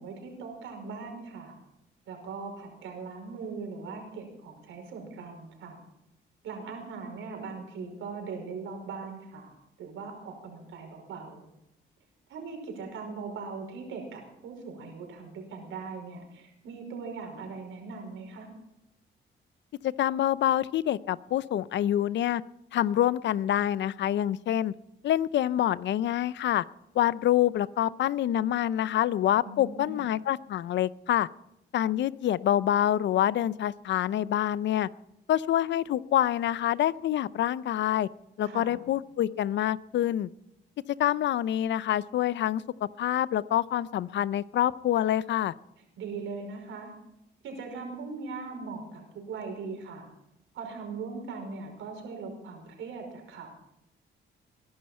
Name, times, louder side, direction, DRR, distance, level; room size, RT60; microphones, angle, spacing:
voice 1, 0.0-1.5 2.1-5.8 6.4-9.5 9.8-11.4 12.3-18.5 29.4-30.1 38.4-38.8 46.0-46.9 47.4-49.0 49.3-50.1 50.5-53.5, right 4 dB, 80° right, 3 dB, 5.3 m, -40 dB
voice 2, 19.8-22.4 22.7-24.7 25.0-26.6 26.9-31.3 31.7-34.9 35.3-38.1 38.4-40.3 41.0-42.6 43.0-45.5, left 12 dB, 65° left, 18 dB, 0.6 m, -26 dB
22.0 x 11.5 x 4.4 m, 0.84 s
cardioid pair, 90°, 20 cm